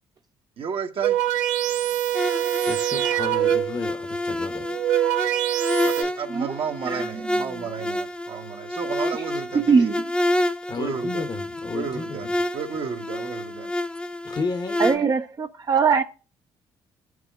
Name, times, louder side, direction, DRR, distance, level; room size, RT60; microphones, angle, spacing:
voice 1, 0.6-1.2 5.8-9.9 10.8-11.2 11.7-12.3 12.5-13.7, right 6 dB, 55° right, 1.0 m, -32 dB
sound 1, 1.0-3.9 4.6-6.0, right 12 dB, 85° right, 0.4 m, -24 dB
sound 2, 2.1-15.0, left 1 dB, 10° left, 0.8 m, -29 dB
voice 2, 2.6-4.7 10.7-12.3 14.2-14.9, left 4 dB, 40° left, 0.9 m, -32 dB
voice 3, 9.5-10.0 14.8-16.0, right 5 dB, 35° right, 0.5 m, -21 dB
12.0 x 4.8 x 2.3 m
hypercardioid pair, 55°, 11 cm